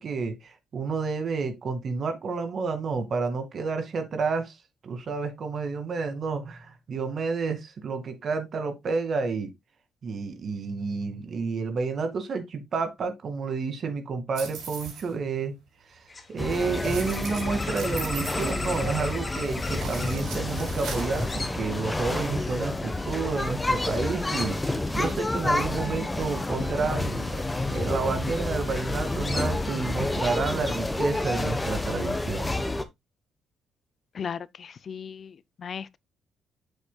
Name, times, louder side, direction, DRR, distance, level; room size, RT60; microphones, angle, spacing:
voice 1, 0.0-4.6 4.8-9.5 10.0-15.5 15.9-27.4 27.7-32.6, right 4 dB, 55° right, 2.2 m, -30 dB
sound 1, 14.3-15.1 16.7-19.1 19.7-21.3, right 5 dB, 85° right, 4.9 m, -40 dB
sound 2, 16.1-31.8, left 3 dB, 30° left, 2.3 m, -41 dB
sound 3, 16.4-32.8, left 2 dB, 15° left, 1.1 m, -29 dB
voice 2, 34.1-36.0, left 7 dB, 50° left, 0.5 m, -37 dB
8.0 x 8.0 x 2.3 m
cardioid pair, 90°, 0 cm